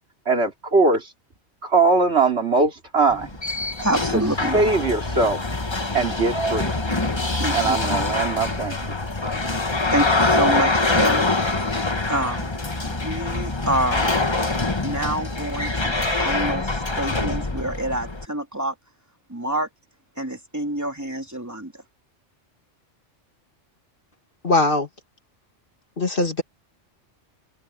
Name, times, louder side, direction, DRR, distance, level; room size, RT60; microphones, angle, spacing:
voice 1, 0.3-1.1 1.6-3.3 4.5-5.4 5.9-6.7 7.5-8.8, right 3 dB, 60° right, 3.0 m, -20 dB
sound 1, 3.1-18.2, left 2 dB, 25° left, 1.4 m, -24 dB
voice 2, 3.8-4.6 7.4-7.8 9.9-11.3 12.1-12.5 12.8-14.2 14.8-18.7 19.3-19.7 20.2-21.7, right 1 dB, 15° right, 2.9 m, -27 dB
voice 3, 24.4-24.9 26.0-26.4, left 2 dB, 45° left, 2.1 m, -20 dB
omnidirectional pair, 1.2 m